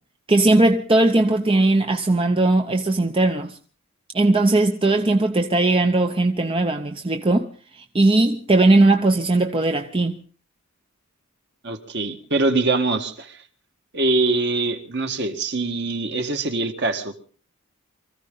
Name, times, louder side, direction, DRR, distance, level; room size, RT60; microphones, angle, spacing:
voice 1, 0.3-3.6 4.1-10.2, right 2 dB, 25° right, 0.7 m, -19 dB
voice 2, 11.6-13.4 13.9-17.1, right 3 dB, 50° right, 1.7 m, -23 dB
24.0 x 15.0 x 3.8 m
head